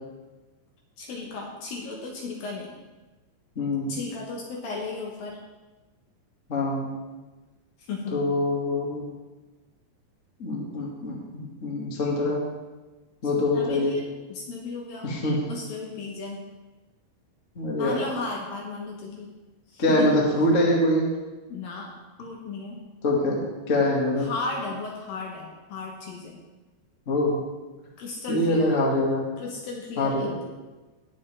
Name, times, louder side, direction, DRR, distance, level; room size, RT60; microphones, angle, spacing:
voice 1, 1.0-2.7 3.9-5.4 7.9-8.2 13.4-14.0 14.3-15.1 15.5-16.4 17.7-19.3 19.7-20.2 21.5-21.9 22.2-22.9 24.2-26.4 28.0-28.7 29.4-30.4, left 3 dB, 65° left, -1 dB, 2.5 m, -35 dB
voice 2, 3.5-3.9 6.5-6.9 8.1-9.0 10.4-12.4 13.2-14.0 15.0-15.4 17.5-18.0 19.8-21.1 23.0-23.4 23.7-24.3 27.1-27.4 28.3-29.2 30.0-30.3, left 1 dB, 35° left, -2 dB, 1.2 m, -24 dB
19.5 x 7.3 x 3.5 m, 1.2 s
omnidirectional pair, 5.2 m